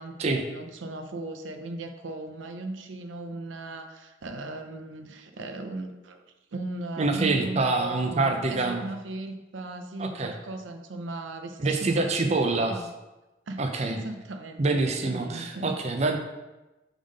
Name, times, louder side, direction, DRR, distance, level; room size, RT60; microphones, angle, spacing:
voice 1, 0.0-6.2 6.5-12.9 13.5-15.8, right 2 dB, 85° right, 6 dB, 0.6 m, -37 dB
voice 2, 7.0-8.8 10.0-10.3 11.6-12.7 13.6-14.0 14.6-16.2, right 3 dB, 35° right, 4 dB, 0.5 m, -26 dB
5.5 x 3.5 x 5.0 m, 1.1 s
head